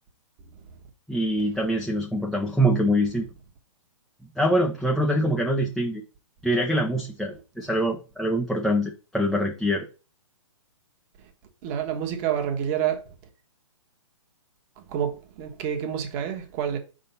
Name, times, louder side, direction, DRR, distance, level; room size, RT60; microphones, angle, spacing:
voice 1, 1.1-3.3 4.4-6.0 6.4-9.9, equal, ahead, 0.6 m, -24 dB
voice 2, 11.6-13.0 14.9-16.8, right 9 dB, 30° right, 1.3 m, -28 dB
5.0 x 3.8 x 5.5 m
hypercardioid pair, 140°, 17 cm